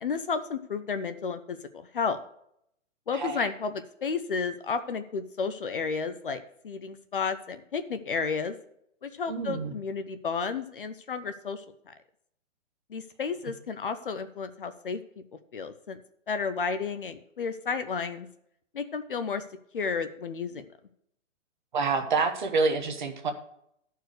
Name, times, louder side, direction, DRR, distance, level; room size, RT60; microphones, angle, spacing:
voice 1, 0.0-2.2 3.1-8.6 9.0-11.9 12.9-15.0 15.5-16.0 16.3-18.3 18.7-19.4 19.7-20.6, left 5 dB, 45° left, 10 dB, 0.6 m, -32 dB
voice 2, 3.1-3.5 9.3-9.7 21.7-23.3, right 4 dB, 40° right, 6 dB, 1.1 m, -27 dB
12.5 x 4.7 x 6.4 m, 0.73 s
hypercardioid pair, 180°, 37 cm